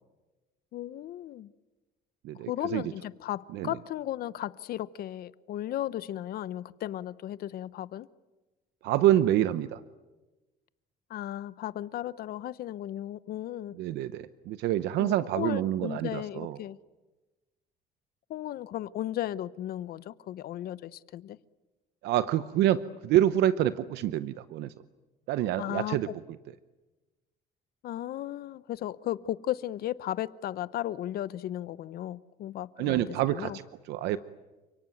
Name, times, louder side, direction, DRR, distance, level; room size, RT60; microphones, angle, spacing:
voice 1, 0.7-1.5 2.5-8.1 11.1-13.8 15.0-16.8 18.3-21.4 25.6-26.1 27.8-33.6, left 13 dB, 65° left, 0.9 m, -35 dB
voice 2, 2.2-2.8 3.5-3.7 8.8-9.8 13.8-16.6 22.0-24.7 25.3-26.1 32.8-33.5 33.9-34.2, right 12 dB, 80° right, 0.8 m, -27 dB
29.5 x 18.0 x 9.3 m
cardioid pair, 120°, 17 cm